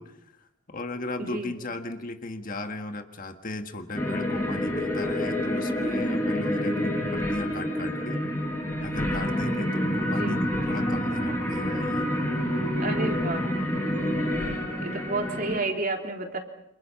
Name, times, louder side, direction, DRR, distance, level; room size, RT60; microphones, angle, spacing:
voice 1, 0.0-8.2 8.8-10.4 10.7-12.1 13.8-14.4, left 2 dB, 40° left, 6 dB, 1.7 m, -36 dB
voice 2, 1.2-1.5 10.1-10.4 12.7-13.4 14.8-16.4, right 2 dB, 40° right, 2 dB, 3.5 m, -31 dB
sound 1, 3.9-15.6, equal, 15° left, 5.3 m, -28 dB
28.5 x 28.0 x 5.9 m, 0.84 s
head